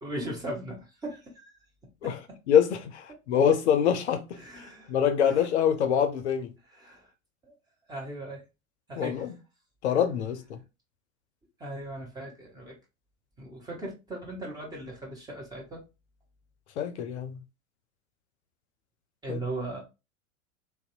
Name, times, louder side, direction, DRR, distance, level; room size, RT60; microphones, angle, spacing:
voice 1, 0.0-1.6 2.0-2.1 4.4-5.0 5.3-5.4 6.7-7.1 7.4-7.5 7.9-8.4 8.9-9.3 11.6-12.8 13.4-15.8 19.2-19.8, right 1 dB, 10° right, 0.5 m, -38 dB
voice 2, 2.5-4.4 4.9-6.5 9.0-9.3 9.8-10.6 16.8-17.4 19.3-19.4, left 8 dB, 55° left, 0.5 m, -25 dB
2.6 x 2.1 x 2.4 m
figure-of-eight pair, 85°, 41 cm